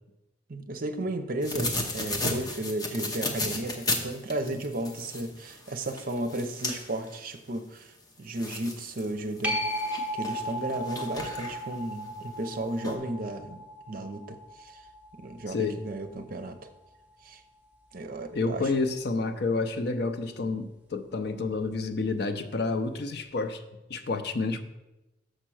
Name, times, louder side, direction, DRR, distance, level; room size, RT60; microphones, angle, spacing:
voice 1, 0.5-9.6 10.1-13.6 13.9-14.8 15.1-16.6 17.2-17.4 17.9-18.7, right 1 dB, 50° right, 8 dB, 0.6 m, -34 dB
sound 1, 1.4-7.2 7.8-7.9 8.4-9.1 9.4-11.8 12.5-12.6 12.8-13.0, left 2 dB, 20° left, 0.8 m, -34 dB
sound 2, 9.4-16.6 22.1-22.2, equal, 10° right, 0.8 m, -36 dB
voice 2, 18.3-23.6 23.9-24.6, left 3 dB, 60° left, 9 dB, 0.5 m, -29 dB
6.5 x 4.4 x 6.2 m, 0.98 s
head